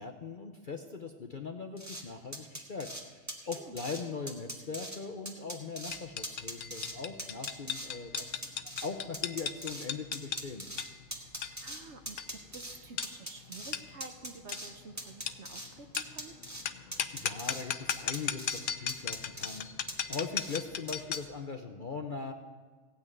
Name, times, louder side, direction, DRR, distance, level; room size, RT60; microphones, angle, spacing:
voice 1, 0.0-10.7 17.1-22.3, left 4 dB, 45° left, 5 dB, 0.7 m, -40 dB
sound 1, 1.8-2.0 2.3-3.0 3.3-4.0 4.3-5.0 5.3-6.0 6.2-6.9 7.2-7.9 8.2-9.9 10.1-11.8 12.1-12.8 13.0-13.7 14.0-14.7 15.0-15.7 15.9-16.6 16.9-17.6 17.9-18.6 18.9-19.6 19.9-20.6 20.9-21.2, right 1 dB, 10° right, 1.4 m, -41 dB
voice 2, 3.4-3.8 11.2-16.3, right 4 dB, 50° right, 7 dB, 1.0 m, -50 dB
sound 2, 5.9-21.4, left 8 dB, 90° left, 0.4 m, -38 dB
16.5 x 6.2 x 9.1 m, 1.5 s
omnidirectional pair, 1.6 m